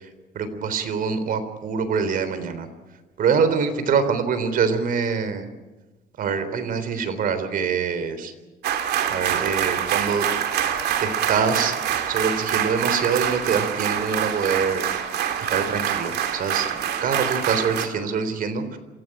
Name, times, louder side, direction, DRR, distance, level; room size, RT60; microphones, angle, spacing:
voice 1, 0.3-2.7 3.2-5.5 6.2-8.3 9.1-10.3 11.0-11.7 12.1-15.2 15.5-18.8, right 6 dB, 55° right, 11 dB, 3.6 m, -25 dB
sound 1, 8.6-17.9, right 9 dB, 70° right, 3.0 m, -25 dB
27.0 x 16.0 x 9.1 m, 1.2 s
cardioid pair, 110°, 17 cm